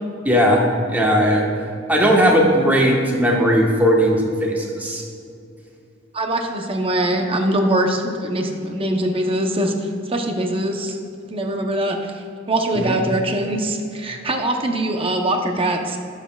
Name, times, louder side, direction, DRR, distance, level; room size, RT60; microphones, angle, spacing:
voice 1, 0.2-0.6 0.9-1.5 1.9-5.0 12.7-13.0, equal, 10° right, -2 dB, 1.2 m, -17 dB
voice 2, 6.1-11.0 11.3-12.1 12.5-16.0, right 1 dB, 30° right, 3 dB, 0.8 m, -22 dB
17.0 x 7.3 x 2.4 m, 2.5 s
head